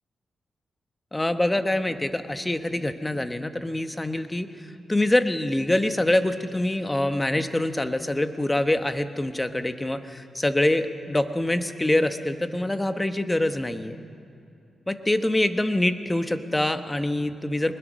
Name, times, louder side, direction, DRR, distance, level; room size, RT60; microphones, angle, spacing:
voice 1, 1.1-4.5 4.9-14.0 14.9-17.8, left 1 dB, 15° left, 9 dB, 1.1 m, -25 dB
22.0 x 20.5 x 6.3 m, 2.6 s
cardioid pair, 85°, 0 cm